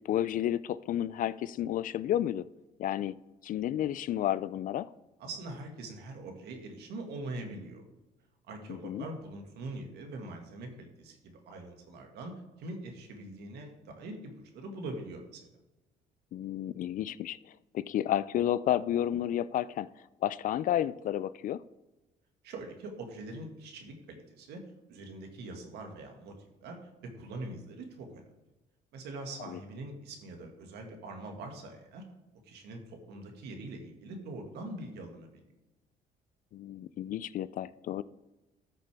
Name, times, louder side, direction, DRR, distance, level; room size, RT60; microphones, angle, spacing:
voice 1, 0.1-2.4 2.8-3.2 3.4-4.9 8.8-9.1 16.3-17.4 17.7-19.9 20.2-21.6 29.5-29.6 36.5-38.0, left 11 dB, 55° left, 17 dB, 0.4 m, -31 dB
voice 2, 5.2-7.8 8.5-15.5 22.4-24.6 24.9-28.2 28.9-32.0 32.4-35.4, right 2 dB, 75° right, 3 dB, 2.0 m, -43 dB
13.0 x 6.7 x 3.5 m, 1.0 s
cardioid pair, 110°, 17 cm